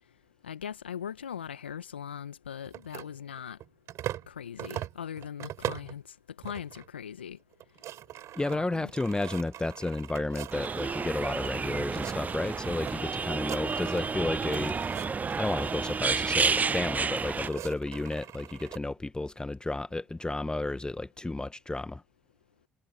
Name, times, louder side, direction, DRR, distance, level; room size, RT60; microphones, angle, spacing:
voice 1, 0.4-3.6 4.3-7.4 8.4-8.9, left 8 dB, 85° left, 1.4 m, -40 dB
sound 1, 2.7-4.3 4.6-6.0 6.4-6.9 7.2-7.3 7.5-11.5 11.8-12.9 13.2-14.1 14.4-16.2 17.0-18.8, right 12 dB, 60° right, 7.1 m, -41 dB
voice 2, 8.3-22.0, left 2 dB, 15° left, 1.2 m, -32 dB
sound 2, 10.5-17.5, right 5 dB, 30° right, 0.5 m, -30 dB
figure-of-eight pair, 50°, 6 cm